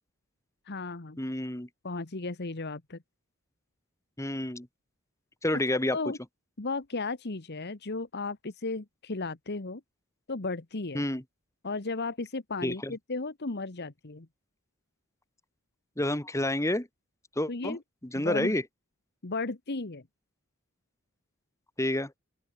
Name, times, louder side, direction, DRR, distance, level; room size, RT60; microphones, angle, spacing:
voice 1, 0.7-1.2 1.8-3.0 5.9-6.2 6.6-9.8 10.3-11.0 11.6-14.3 17.5-17.8 18.1-18.5 19.2-20.0, left 3 dB, 50° left, 1.3 m, -35 dB
voice 2, 1.2-1.7 4.2-4.7 5.4-6.0 10.9-11.2 12.6-12.9 16.0-16.9 17.4-17.8 18.0-18.6 21.8-22.1, left 1 dB, 15° left, 2.0 m, -29 dB
open air
head